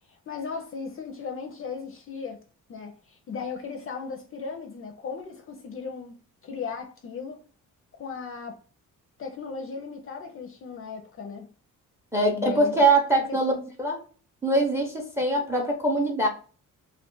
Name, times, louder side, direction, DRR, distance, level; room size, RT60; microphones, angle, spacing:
voice 1, 0.1-2.4 2.7-7.4 7.9-8.6 9.2-11.5 12.3-12.8 13.3-13.7, left 5 dB, 40° left, 0.5 m, -37 dB
voice 2, 12.1-13.5 13.8-14.0 14.4-16.3, right 2 dB, 10° right, 0.6 m, -23 dB
2.3 x 2.2 x 3.7 m
cardioid pair, 120°, 33 cm